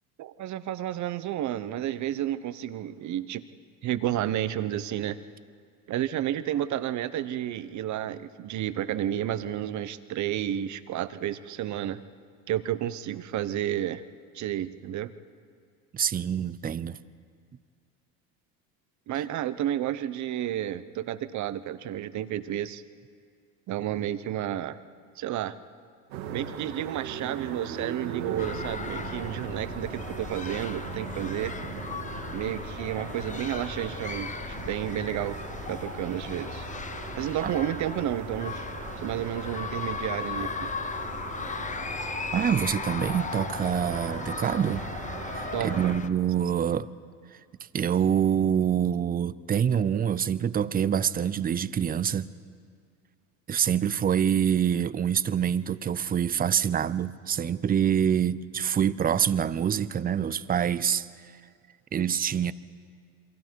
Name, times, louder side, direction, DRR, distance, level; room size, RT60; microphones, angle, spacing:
voice 1, 0.2-3.4 3.8-5.2 5.9-12.0 12.5-14.0 14.3-15.1 19.1-22.8 23.7-24.8 25.2-25.6 26.3-31.5 32.3-35.4 35.7-36.7 37.2-38.6 39.0-40.7 45.5-46.0, right 11 dB, 45° right, 1.0 m, -31 dB
voice 2, 15.9-17.0 37.4-37.5 42.3-44.8 45.3-46.9 47.7-52.3 53.5-61.1 61.9-62.5, right 8 dB, 25° right, 0.6 m, -26 dB
sound 1, 26.1-46.0, right 7 dB, 80° right, 2.6 m, -40 dB
sound 2, 28.4-46.1, left 5 dB, 20° left, 0.9 m, -37 dB
28.5 x 23.0 x 4.7 m
supercardioid pair, 90°, 39 cm